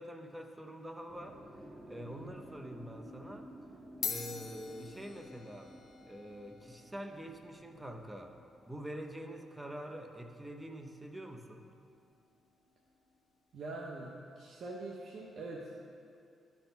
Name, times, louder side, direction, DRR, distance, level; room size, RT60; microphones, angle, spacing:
voice 1, 0.0-1.4 1.9-3.5 4.0-5.7 6.0-8.4 8.7-11.6, equal, 10° right, 5 dB, 0.8 m, -45 dB
sound 1, 1.1-11.2 11.5-13.1, right 1 dB, 25° right, 2.3 m, -54 dB
sound 2, 2.4-2.7 3.5-3.6 3.9-12.6, left 6 dB, 65° left, 0.7 m, -48 dB
voice 2, 13.5-14.1 14.4-15.8, right 2 dB, 65° right, -2 dB, 0.9 m, -44 dB
11.0 x 4.4 x 6.8 m, 2.4 s
cardioid pair, 100°, 0 cm